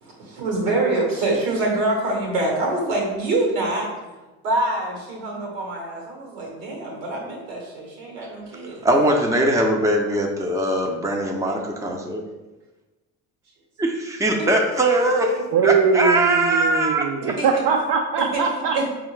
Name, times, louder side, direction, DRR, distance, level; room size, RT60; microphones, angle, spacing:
voice 1, 0.0-3.9 4.4-8.8 14.4-14.5 17.4-17.5 18.3-18.4 18.7-18.9, right 2 dB, 80° right, 0 dB, 1.2 m, -25 dB
voice 2, 8.8-12.2 13.8-17.3, right 1 dB, 5° right, 1 dB, 0.6 m, -21 dB
voice 3, 15.5-18.9, right 5 dB, 55° right, 0 dB, 0.6 m, -21 dB
4.9 x 2.4 x 3.1 m, 1.1 s
hypercardioid pair, 60°, 43 cm